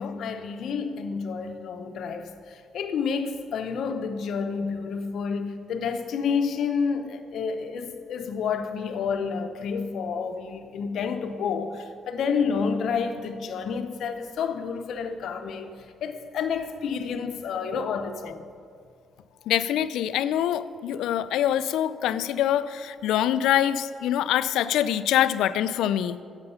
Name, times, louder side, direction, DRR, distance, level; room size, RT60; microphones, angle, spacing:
voice 1, 0.0-2.3 2.7-15.7 16.0-18.4, left 6 dB, 70° left, 0.7 m, -29 dB
voice 2, 19.5-26.2, left 11 dB, 85° left, 0.3 m, -24 dB
9.9 x 7.8 x 5.6 m
cardioid pair, 90°, 0 cm